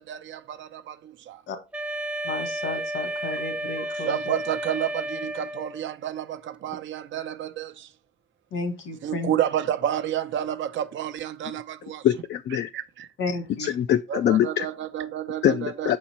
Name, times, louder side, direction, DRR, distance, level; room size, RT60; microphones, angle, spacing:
voice 1, 0.0-1.4 4.0-7.9 9.0-12.0 12.7-13.1 14.1-16.0, right 10 dB, 75° right, 0.8 m, -30 dB
Wind instrument woodwind instrument, 1.7-5.9, right 1 dB, 5° right, 0.6 m, -32 dB
voice 2, 2.2-4.3 8.5-9.3 13.2-13.7, left 3 dB, 75° left, 1.6 m, -32 dB
voice 3, 12.0-12.7 13.6-14.7 15.4-16.0, left 11 dB, 60° left, 0.4 m, -23 dB
6.1 x 4.2 x 4.2 m
cardioid pair, 90°, 20 cm